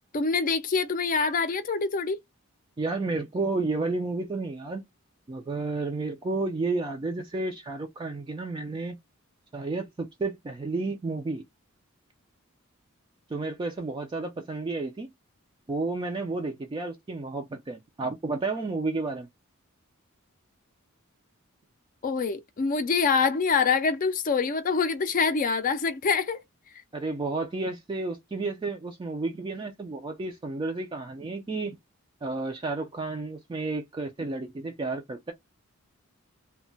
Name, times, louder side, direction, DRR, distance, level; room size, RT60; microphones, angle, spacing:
voice 1, 0.1-2.2 22.0-26.4, left 5 dB, 40° left, 0.4 m, -25 dB
voice 2, 2.8-4.8 5.3-9.0 9.5-11.4 13.3-15.1 15.7-19.3 26.9-31.8 32.2-35.3, right 3 dB, 25° right, 0.3 m, -31 dB
2.2 x 2.1 x 3.8 m
head